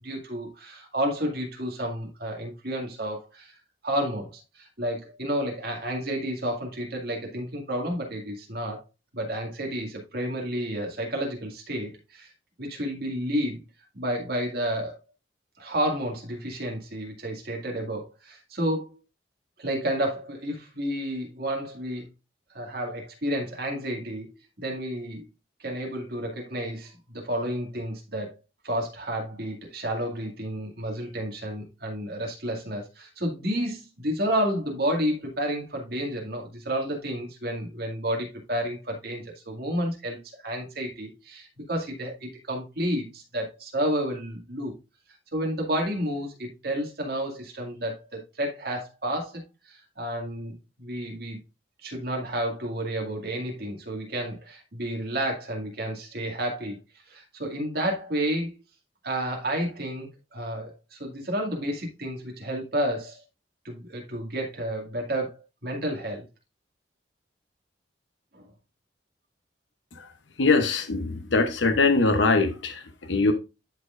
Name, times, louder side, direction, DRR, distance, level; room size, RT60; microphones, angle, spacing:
voice 1, 0.0-3.5 3.8-8.8 9.1-12.3 12.6-13.6 14.0-15.0 15.6-19.0 19.6-22.1 22.5-24.3 24.6-25.3 25.6-28.4 28.6-40.2 40.4-44.7 45.3-49.4 49.7-51.4 51.8-56.8 57.1-58.6 59.0-63.2 63.6-65.3 65.6-66.3 68.3-68.5, equal, 55° right, 2.1 m, -31 dB
voice 2, 70.4-73.3, left 3 dB, 75° left, 0.8 m, -22 dB
12.0 x 4.3 x 2.5 m
head